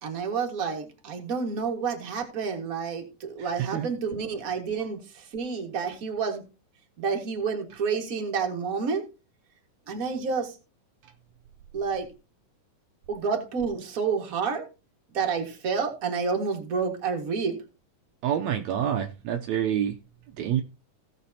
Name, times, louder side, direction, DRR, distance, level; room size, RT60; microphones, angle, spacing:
voice 1, 0.0-6.4 7.0-9.0 9.9-10.6 11.7-12.1 13.1-14.7 15.1-17.6, right 5 dB, 35° right, 1.8 m, -29 dB
voice 2, 18.2-20.0 20.4-20.6, right 9 dB, 75° right, 1.8 m, -27 dB
16.5 x 6.8 x 2.8 m
omnidirectional pair, 3.5 m